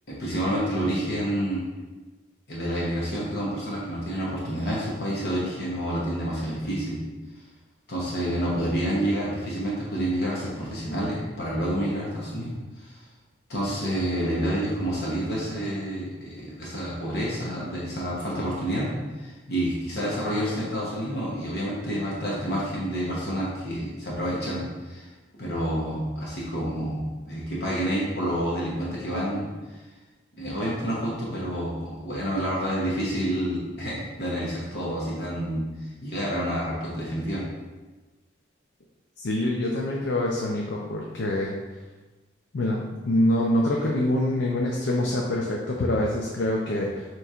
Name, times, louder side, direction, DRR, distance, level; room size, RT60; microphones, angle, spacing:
voice 1, 0.1-1.6 2.5-7.0 7.9-13.0 13.5-25.1 25.4-29.5 30.4-37.4, equal, 60° left, -6 dB, 0.9 m, -29 dB
voice 2, 39.2-41.6 42.5-47.1, left 1 dB, 75° left, -2 dB, 0.5 m, -25 dB
6.8 x 3.1 x 2.4 m, 1.2 s
head